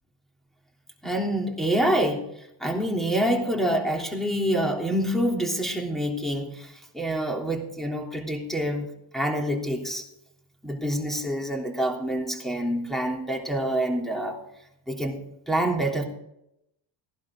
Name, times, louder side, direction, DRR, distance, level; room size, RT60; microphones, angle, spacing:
voice 1, 1.0-2.2 2.6-8.9 9.1-10.0 10.6-14.4 14.9-15.2 15.5-16.0, right 1 dB, ahead, -1 dB, 3.3 m, -26 dB
17.0 x 11.5 x 3.8 m, 0.80 s
cardioid pair, 90°, 46 cm